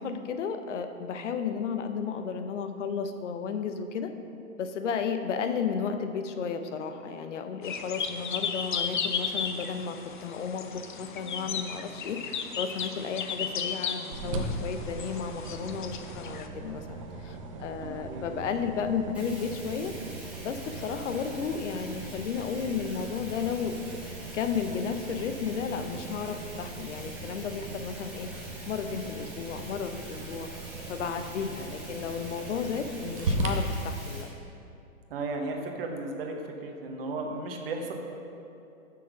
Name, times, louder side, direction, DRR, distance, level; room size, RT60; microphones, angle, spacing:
voice 1, 0.0-4.1 4.6-19.9 20.4-28.3 28.7-30.5 30.9-34.3, left 6 dB, 60° left, 8 dB, 0.8 m, -33 dB
sound 1, 7.6-16.5, left 6 dB, 40° left, 0.4 m, -35 dB
sound 2, 14.1-33.5, right 2 dB, 25° right, 0.5 m, -39 dB
voice 2, 17.8-18.4 35.1-36.3 36.6-37.9, right 3 dB, 40° right, 2 dB, 1.2 m, -35 dB
Bathtub (filling or washing), 19.1-34.2, right 1 dB, 5° right, 1.3 m, -46 dB
7.5 x 6.1 x 6.0 m, 2.7 s
hypercardioid pair, 155°, 42 cm